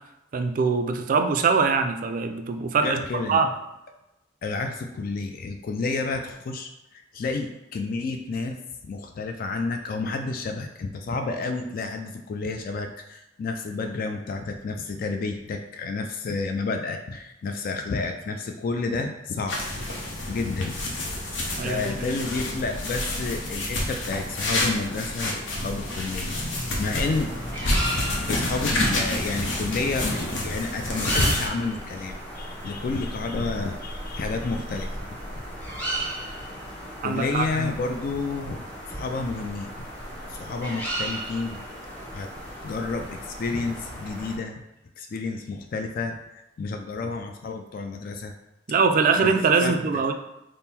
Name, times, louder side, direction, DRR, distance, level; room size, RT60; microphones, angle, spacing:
voice 1, 0.3-3.5 21.6-22.1 37.0-37.7 48.7-50.1, right 5 dB, 45° right, 6 dB, 0.3 m, -23 dB
voice 2, 2.8-3.4 4.4-19.8 20.3-21.1 21.6-27.3 28.3-35.0 37.0-39.9 40.3-41.6 42.1-42.4 42.6-44.6 45.0-48.3 49.1-49.3 49.6-49.7, left 3 dB, 50° left, 5 dB, 0.3 m, -30 dB
sound 1, 19.5-31.5, left 1 dB, 85° left, 0.8 m, -28 dB
sound 2, 26.9-44.4, right 1 dB, 10° left, 0.9 m, -35 dB
3.6 x 2.0 x 4.2 m, 0.91 s
head